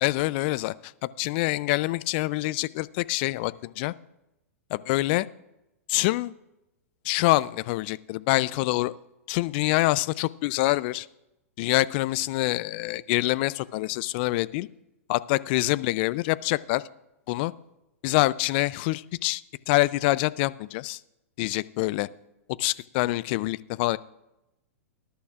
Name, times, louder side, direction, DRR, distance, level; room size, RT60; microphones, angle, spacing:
voice 1, 0.0-0.9 1.2-3.9 4.7-5.3 5.9-6.3 7.0-9.0 9.3-11.1 11.6-14.7 15.1-16.8 17.3-17.5 18.0-19.4 19.7-21.0 21.4-22.1 22.6-24.0, left 19 dB, 45° left, 18 dB, 0.4 m, -25 dB
19.5 x 11.5 x 2.4 m, 0.91 s
hypercardioid pair, 110°, 8 cm